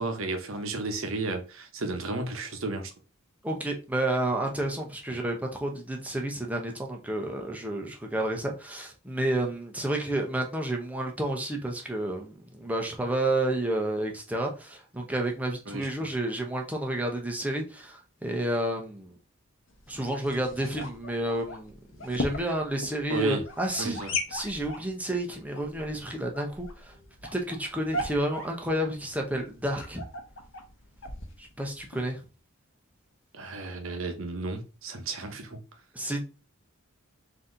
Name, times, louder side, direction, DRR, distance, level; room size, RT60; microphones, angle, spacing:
voice 1, 0.0-2.9 5.1-5.2 15.7-15.9 23.1-23.4 23.8-24.2 33.3-35.6, right 3 dB, 65° right, 0.8 m, -33 dB
voice 2, 3.4-19.2 19.9-24.0 24.3-26.9 27.3-30.0 31.4-32.2 35.9-36.2, right 1 dB, 5° right, 0.7 m, -30 dB
sound 1, 19.7-32.1, left 2 dB, 60° left, 0.9 m, -39 dB
3.9 x 2.8 x 3.8 m
head